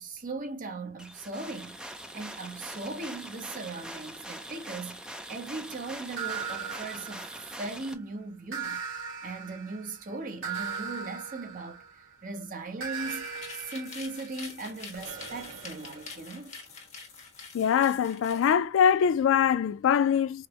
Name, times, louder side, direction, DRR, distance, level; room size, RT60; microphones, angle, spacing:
voice 1, 0.0-13.3 13.7-16.6, right 3 dB, 45° right, 0.8 m, -39 dB
sound 1, 1.0-7.9, right 1 dB, 5° right, 0.5 m, -43 dB
sound 2, 6.2-7.9 8.5-12.2 12.8-16.5, right 6 dB, 90° right, 1.7 m, -39 dB
sound 3, 12.9-18.5, left 4 dB, 35° left, 1.2 m, -46 dB
voice 2, 17.5-20.5, left 8 dB, 70° left, 0.3 m, -23 dB
5.1 x 2.0 x 2.8 m
head